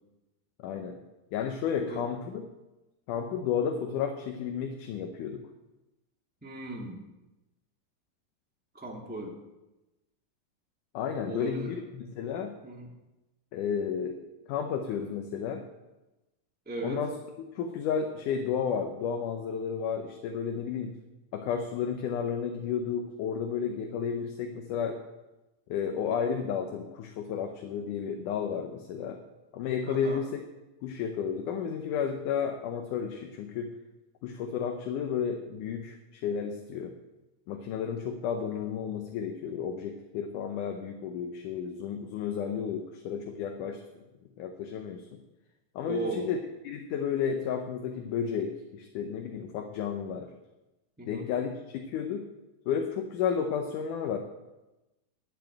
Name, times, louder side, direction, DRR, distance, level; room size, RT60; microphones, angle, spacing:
voice 1, 0.6-1.0 1.3-2.5 3.1-5.4 10.9-12.5 13.5-14.2 14.5-15.6 16.8-17.1 17.6-20.9 21.3-25.0 25.7-29.2 29.5-30.4 30.8-33.7 34.2-36.9 37.5-43.8 44.4-45.2 45.8-46.4 46.6-50.3 51.1-52.2 52.7-54.2, left 7 dB, 70° left, 4 dB, 2.2 m, -32 dB
voice 2, 6.4-7.0 8.7-9.3 11.2-11.7 12.6-12.9 16.6-17.0 29.9-30.2 45.8-46.3 51.0-51.2, right 2 dB, 5° right, -2 dB, 1.0 m, -36 dB
10.5 x 7.2 x 8.9 m, 1.0 s
omnidirectional pair, 4.2 m